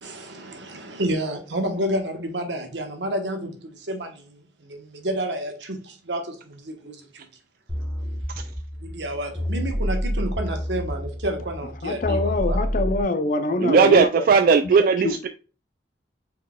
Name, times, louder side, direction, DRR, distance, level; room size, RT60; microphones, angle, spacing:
voice 1, 0.0-7.3 8.8-12.6, right 1 dB, 90° right, 1.1 m, -30 dB
sound 1, 7.7-13.0, equal, ahead, 1.0 m, -28 dB
voice 2, 11.8-14.2 15.0-15.3, left 3 dB, 50° left, 0.5 m, -24 dB
voice 3, 13.6-15.3, right 5 dB, 55° right, 0.3 m, -17 dB
4.4 x 3.9 x 2.3 m
head